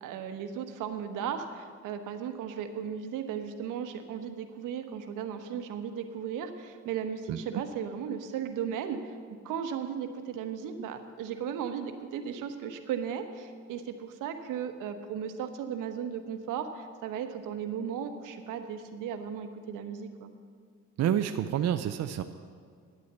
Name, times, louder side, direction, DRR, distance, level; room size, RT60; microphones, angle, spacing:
voice 1, 0.0-20.3, right 8 dB, 85° right, 7 dB, 1.1 m, -36 dB
voice 2, 7.3-7.6 21.0-22.2, right 10 dB, 55° right, 8 dB, 0.6 m, -29 dB
11.0 x 8.4 x 8.1 m, 2.1 s
cardioid pair, 80°, 31 cm